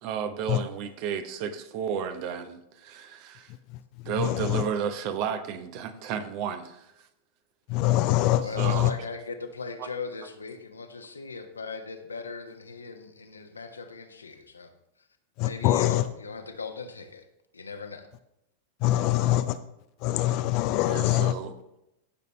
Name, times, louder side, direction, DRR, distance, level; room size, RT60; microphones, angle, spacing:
voice 1, 0.0-3.5 4.0-6.9 8.4-8.9 9.8-9.9 20.9-21.5, right 7 dB, 45° right, 9 dB, 1.0 m, -32 dB
voice 2, 4.2-4.6 7.7-8.9 15.4-16.0 18.8-19.6 20.0-21.3, left 15 dB, 45° left, 11 dB, 0.5 m, -24 dB
voice 3, 8.4-14.7 15.4-17.2 17.5-18.1, left 4 dB, 75° left, 6 dB, 1.2 m, -39 dB
15.5 x 6.7 x 3.3 m, 0.83 s
figure-of-eight pair, 90°, 0 cm